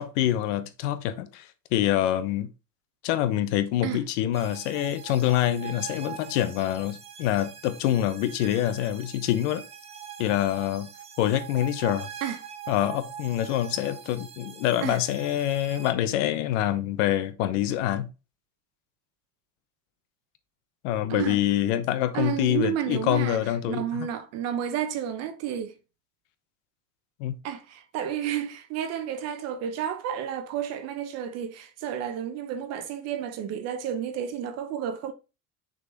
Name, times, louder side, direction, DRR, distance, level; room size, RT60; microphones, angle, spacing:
voice 1, 0.0-2.5 3.0-9.6 10.2-10.9 11.2-12.1 12.7-18.1 20.8-24.1 27.2-27.4, left 12 dB, 85° left, 1.0 m, -26 dB
sound 1, 4.3-15.9, right 9 dB, 15° right, 0.6 m, -43 dB
voice 2, 22.1-23.4 23.7-25.7 27.4-35.1, right 9 dB, 45° right, 0.8 m, -31 dB
6.4 x 4.0 x 3.9 m
cardioid pair, 165°, 35 cm